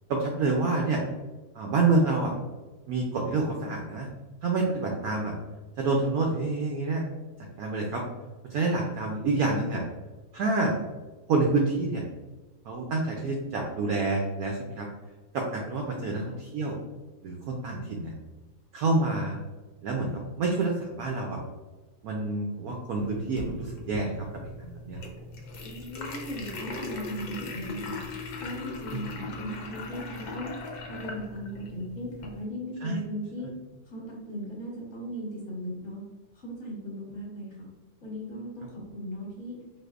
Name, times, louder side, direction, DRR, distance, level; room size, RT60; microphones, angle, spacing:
voice 1, 0.1-1.0 1.5-2.3 2.9-4.1 4.4-5.3 5.8-7.0 7.6-8.0 8.4-9.8 10.3-10.8 11.3-12.0 12.7-14.9 15.3-16.8 17.2-18.1 18.7-19.4 19.8-20.1 20.4-21.4 22.0-24.1 24.6-25.0 28.9-29.0 32.8-32.9, right 3 dB, 85° right, 0 dB, 0.8 m, -27 dB
voice 2, 15.9-16.2 25.6-28.0 28.4-30.5 30.9-33.5 33.8-36.0 36.3-37.7 38.0-39.6, equal, 40° left, -3 dB, 1.2 m, -37 dB
sound 1, 23.0-32.5, left 3 dB, 65° left, 1.0 m, -40 dB
4.2 x 2.7 x 2.4 m, 1.2 s
omnidirectional pair, 2.1 m